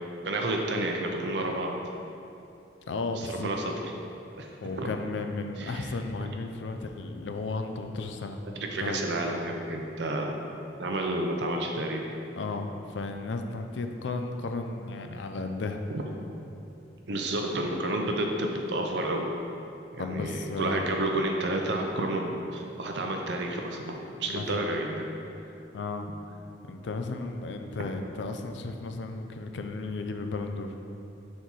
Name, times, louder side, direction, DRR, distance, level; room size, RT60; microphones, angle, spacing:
voice 1, 0.2-1.7 3.4-3.7 4.4-4.5 4.8-4.9 5.6-5.9 8.7-10.3 10.8-12.0 15.9-16.0 17.1-19.3 19.9-23.9 24.2-25.1, right 1 dB, 70° right, 1 dB, 0.7 m, -30 dB
voice 2, 2.9-3.5 4.6-8.4 8.8-9.1 12.4-15.8 20.0-20.9 24.3-24.6 25.7-26.1 26.6-30.8, left 3 dB, 75° left, 5 dB, 0.4 m, -34 dB
5.5 x 4.3 x 4.6 m, 2.8 s
head